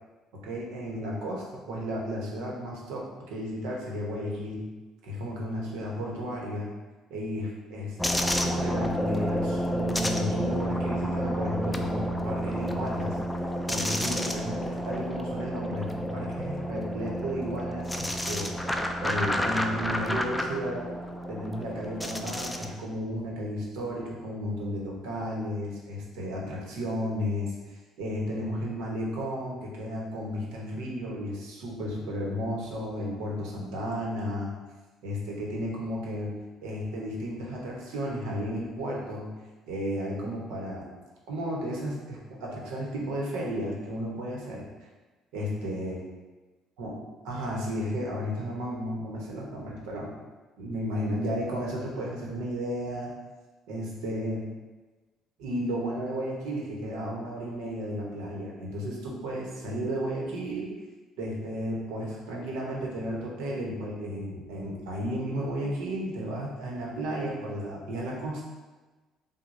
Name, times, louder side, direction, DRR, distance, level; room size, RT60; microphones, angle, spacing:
voice 1, 0.4-4.6 5.0-6.7 7.1-13.2 13.7-17.8 18.3-18.5 19.0-20.8 21.3-34.5 35.0-36.3 36.6-39.3 39.7-40.9 41.3-44.7 45.3-46.0 46.8-47.0 47.2-50.1 50.6-53.1 53.7-54.4 55.4-60.7 61.2-68.4, equal, 90° right, -3 dB, 1.0 m, -33 dB
sound 1, 8.0-22.7, equal, 5° left, 0.3 m, -30 dB
6.1 x 2.2 x 2.6 m, 1.2 s
cardioid pair, 110°, 0 cm